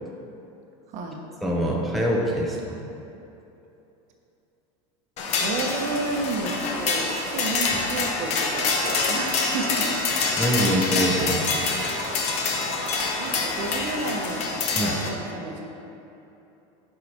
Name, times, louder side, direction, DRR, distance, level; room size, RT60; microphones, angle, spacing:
voice 1, 0.9-1.2 5.3-10.0 13.2-15.6, right 3 dB, 50° right, 2 dB, 1.0 m, -31 dB
voice 2, 1.4-2.8 10.4-11.7 14.8-15.0, equal, ahead, -3 dB, 0.7 m, -24 dB
sound 1, 5.2-15.1, left 3 dB, 40° left, 0.9 m, -26 dB
6.9 x 4.8 x 4.3 m, 2.9 s
supercardioid pair, 130°, 16 cm